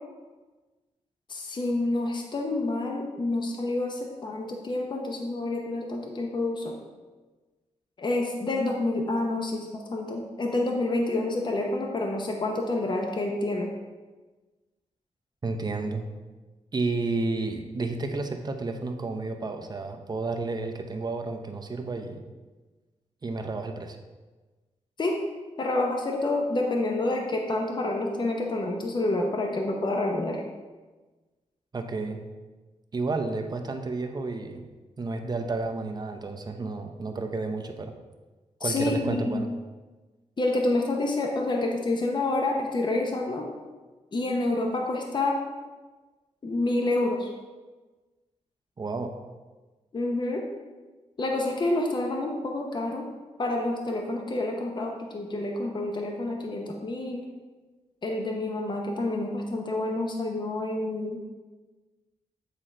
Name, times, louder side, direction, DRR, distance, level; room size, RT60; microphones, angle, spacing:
voice 1, 1.3-6.8 8.0-13.7 25.0-25.2 25.6-30.4 38.6-39.4 40.4-43.5 44.1-45.4 46.4-47.3 49.9-50.4 51.2-53.1 53.4-57.2 58.0-61.2, left 2 dB, 40° left, 1 dB, 0.8 m, -28 dB
voice 2, 15.4-16.1 16.7-22.2 23.2-24.0 31.7-32.2 32.9-34.7 35.0-37.9 38.6-39.5 48.8-49.1, right 3 dB, 35° right, 4 dB, 0.7 m, -31 dB
8.2 x 3.8 x 4.3 m, 1.3 s
wide cardioid pair, 130°, 12 cm